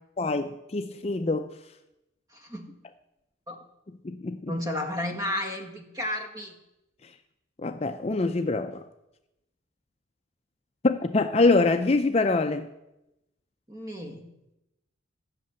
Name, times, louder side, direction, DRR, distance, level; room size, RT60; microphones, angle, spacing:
voice 1, 0.2-1.5 4.0-4.5 7.6-8.8 10.8-12.7, left 3 dB, 30° left, 7 dB, 0.5 m, -24 dB
voice 2, 2.3-2.7 3.5-3.6 4.5-6.5 13.7-14.3, left 1 dB, 20° right, 3 dB, 1.7 m, -32 dB
13.5 x 6.6 x 8.6 m, 0.91 s
head